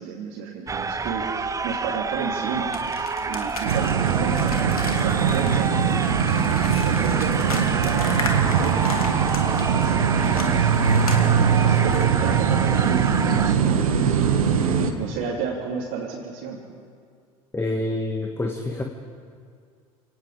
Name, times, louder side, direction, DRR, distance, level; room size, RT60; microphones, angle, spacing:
voice 1, 0.0-6.0 6.3-10.8 11.3-14.3 15.0-16.6, right 6 dB, 55° right, -4 dB, 3.3 m, -32 dB
sound 1, 0.7-13.5, right 4 dB, 15° right, 0.9 m, -29 dB
sound 2, 2.7-9.9 10.3-12.1, left 4 dB, 85° left, 2.5 m, -35 dB
sound 3, 3.7-14.9, right 7 dB, 75° right, 1.7 m, -21 dB
voice 2, 17.5-18.8, left 2 dB, 15° left, 3 dB, 1.8 m, -27 dB
29.5 x 18.0 x 5.2 m, 2.1 s
figure-of-eight pair, 70°, 18 cm